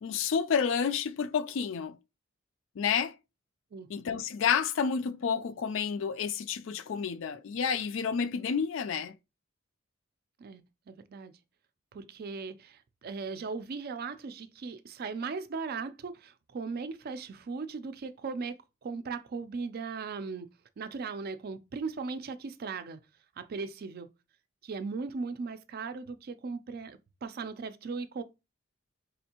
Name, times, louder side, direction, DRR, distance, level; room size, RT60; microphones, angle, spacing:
voice 1, 0.0-2.0 2.8-3.2 3.9-9.2, left 6 dB, 70° left, 0.4 m, -30 dB
voice 2, 10.4-11.3 11.9-20.5 20.8-23.0 23.4-24.1 24.6-28.2, right 4 dB, 50° right, 0.4 m, -38 dB
4.2 x 2.6 x 2.8 m
head